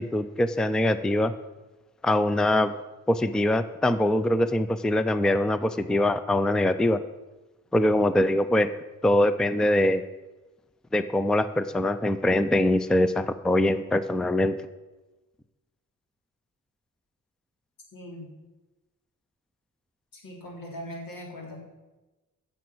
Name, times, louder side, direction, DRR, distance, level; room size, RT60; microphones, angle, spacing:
voice 1, 0.0-1.3 2.0-2.7 3.1-7.0 7.7-8.7 9.0-10.0 10.9-14.6, left 1 dB, ahead, 12 dB, 0.4 m, -23 dB
voice 2, 17.9-18.3 20.1-21.6, equal, 90° left, -1 dB, 3.6 m, -40 dB
15.5 x 6.9 x 6.0 m, 1.1 s
wide cardioid pair, 160°, 33 cm